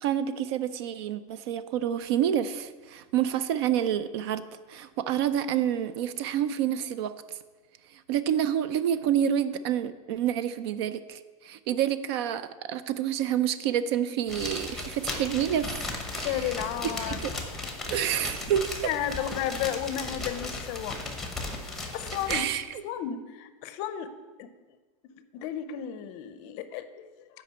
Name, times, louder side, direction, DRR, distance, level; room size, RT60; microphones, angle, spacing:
voice 1, 0.0-4.4 4.7-7.1 7.9-15.8 16.1-17.3 17.9-18.9 22.3-22.8, right 10 dB, 50° right, 14 dB, 0.4 m, -28 dB
sound 1, 14.3-22.4, left 2 dB, ahead, 0.9 m, -36 dB
voice 2, 16.2-17.2 18.9-21.0 21.9-22.5 22.8-24.1 24.4-24.5 25.3-26.8, left 10 dB, 40° left, 11 dB, 0.6 m, -32 dB
8.9 x 5.1 x 7.0 m, 1.3 s
supercardioid pair, 165°, 18 cm